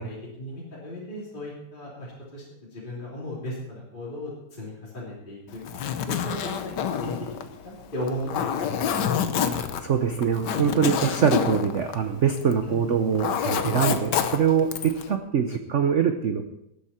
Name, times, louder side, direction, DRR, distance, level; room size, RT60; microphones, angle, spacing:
voice 1, 0.0-2.4 2.7-5.6 6.1-7.3 7.6-9.6 12.6-12.9, left 1 dB, 20° left, -7 dB, 3.2 m, -36 dB
Zipper (clothing), 5.5-12.7 12.9-15.1, left 8 dB, 60° left, 1.3 m, -28 dB
voice 2, 9.8-16.4, right 7 dB, 85° right, 7 dB, 0.6 m, -23 dB
19.0 x 8.5 x 4.3 m, 0.83 s
omnidirectional pair, 2.3 m